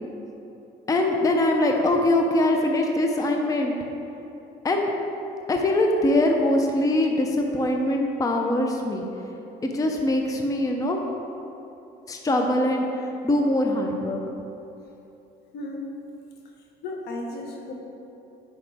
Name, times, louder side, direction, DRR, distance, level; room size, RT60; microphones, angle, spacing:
voice 1, 0.9-3.7 4.6-4.9 5.5-9.1 9.6-11.0 12.1-14.2, left 1 dB, 20° left, 2 dB, 0.6 m, -22 dB
voice 2, 15.5-16.1 16.8-17.7, left 2 dB, 75° left, 0 dB, 1.2 m, -34 dB
10.0 x 4.9 x 3.5 m, 3.0 s
cardioid pair, 110°, 17 cm